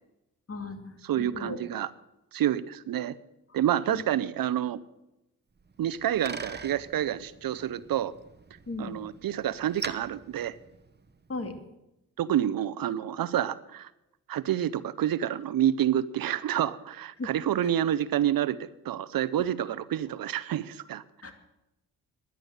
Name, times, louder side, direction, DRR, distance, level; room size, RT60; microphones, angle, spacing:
voice 1, 0.5-1.6 3.9-4.1 8.7-9.0 11.3-11.6 17.2-17.3 21.2-21.3, left 3 dB, 40° left, 6 dB, 2.5 m, -37 dB
voice 2, 1.0-1.9 2.3-3.2 3.5-4.8 5.8-8.1 8.8-10.6 12.2-13.9 14.3-21.0, right 11 dB, 65° right, 17 dB, 0.7 m, -28 dB
Bicycle, 5.6-11.3, right 4 dB, 30° right, 1.1 m, -43 dB
10.5 x 10.5 x 7.9 m, 0.91 s
supercardioid pair, 50°, 36 cm